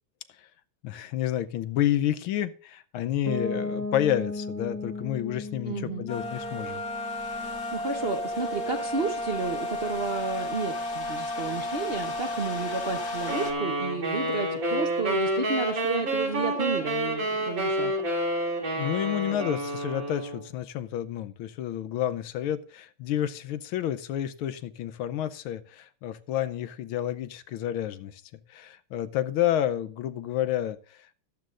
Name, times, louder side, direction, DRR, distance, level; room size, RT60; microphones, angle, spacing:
voice 1, 0.8-6.8 18.8-28.2 28.5-31.2, left 11 dB, 80° left, 13 dB, 1.6 m, -30 dB
Piano, 3.3-9.0, left 2 dB, 10° left, 1.5 m, -37 dB
voice 2, 5.6-6.1 7.4-17.9, right 4 dB, 50° right, 4 dB, 0.7 m, -32 dB
sound 1, 6.1-13.5, left 1 dB, 50° left, 2.0 m, -33 dB
sound 2, 13.3-20.5, right 1 dB, 65° right, 4.4 m, -29 dB
14.0 x 12.0 x 2.5 m, 0.40 s
omnidirectional pair, 2.3 m